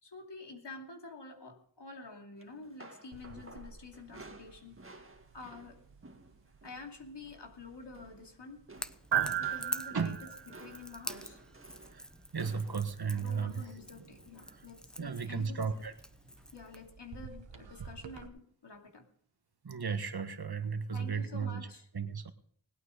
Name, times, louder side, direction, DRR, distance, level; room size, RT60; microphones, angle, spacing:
voice 1, 0.0-4.8 5.3-5.8 6.6-8.6 9.4-11.4 13.1-15.8 16.5-19.1 20.9-21.9, left 3 dB, 75° left, 2 dB, 2.7 m, -49 dB
sound 1, 2.4-6.9 7.2-7.5 7.8-8.3 8.7-14.7 15.6-15.9 16.3-16.5 17.5-17.6, right 2 dB, 30° right, 1.9 m, -55 dB
sound 2, 3.1-18.3, right 9 dB, 90° right, 1.4 m, -42 dB
Crackle / Crack, 8.7-16.9, equal, ahead, 0.9 m, -46 dB
voice 2, 12.3-13.6 14.5-14.6 15.0-15.9 19.6-21.7 21.9-22.3, right 5 dB, 60° right, 9 dB, 1.5 m, -34 dB
20.0 x 9.0 x 5.0 m, 0.62 s
wide cardioid pair, 50°, 42 cm